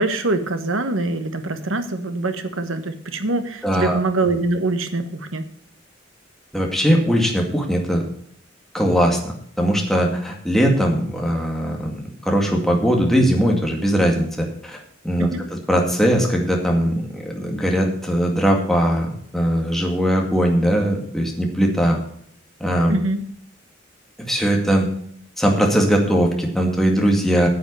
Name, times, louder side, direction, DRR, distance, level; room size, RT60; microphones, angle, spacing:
voice 1, 0.0-5.4 15.2-15.4 22.9-23.2, right 2 dB, 90° right, 9 dB, 1.3 m, -24 dB
voice 2, 3.6-4.0 6.5-8.0 8.7-14.8 15.0-22.0 22.6-22.9 24.3-24.9 25.4-27.5, equal, ahead, 0 dB, 2.1 m, -20 dB
9.4 x 8.0 x 6.8 m, 0.64 s
head